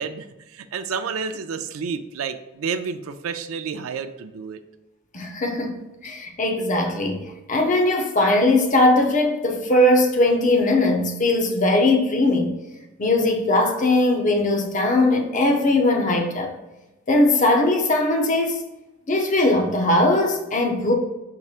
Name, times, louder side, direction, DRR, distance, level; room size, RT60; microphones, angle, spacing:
voice 1, 0.0-4.6, right 5 dB, 75° right, 0.4 m, -30 dB
voice 2, 5.1-12.5 13.0-16.5 17.1-18.6 19.1-20.9, left 2 dB, 35° left, 0.6 m, -20 dB
4.7 x 4.2 x 2.4 m
head